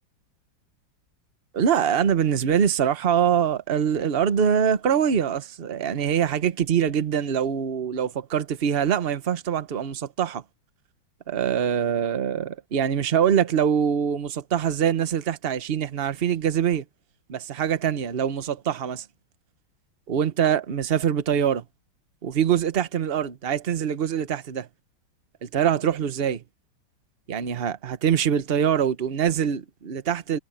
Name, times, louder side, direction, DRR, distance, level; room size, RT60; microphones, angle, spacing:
voice 1, 1.5-10.4 11.3-16.8 17.3-19.1 20.1-21.6 22.2-24.7 25.4-26.4 27.3-30.4, right 8 dB, 40° right, 0.9 m, -24 dB
omnidirectional pair, 2.2 m